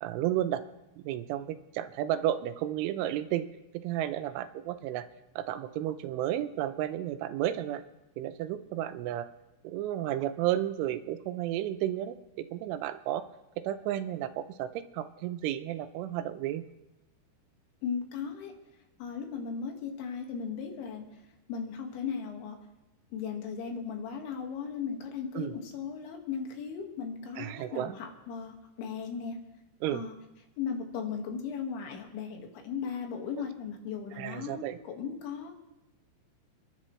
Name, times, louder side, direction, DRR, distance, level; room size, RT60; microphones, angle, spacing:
voice 1, 0.0-0.6 1.0-3.5 3.7-5.1 5.4-7.8 8.2-9.3 9.6-12.2 12.5-13.3 13.6-16.6 25.3-25.5 27.4-28.0 29.8-30.0 34.2-34.8, right 12 dB, 85° right, 11 dB, 3.2 m, -32 dB
voice 2, 17.8-18.5 19.0-21.2 21.5-22.6 23.1-29.4 29.9-30.1 30.6-35.5, left 6 dB, 75° left, 2 dB, 4.0 m, -37 dB
28.5 x 11.0 x 3.2 m, 0.98 s
omnidirectional pair, 5.5 m